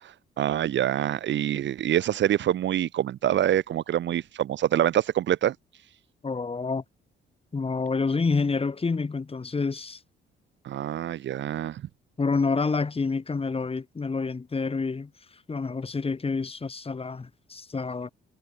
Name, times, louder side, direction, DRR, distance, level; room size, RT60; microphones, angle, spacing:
voice 1, 0.0-5.5 10.6-11.8, right 11 dB, 65° right, 1.2 m, -26 dB
voice 2, 6.2-6.8 7.5-10.0 12.2-15.1 15.5-18.1, left 4 dB, 30° left, 4.9 m, -28 dB
cardioid pair, 90°, 20 cm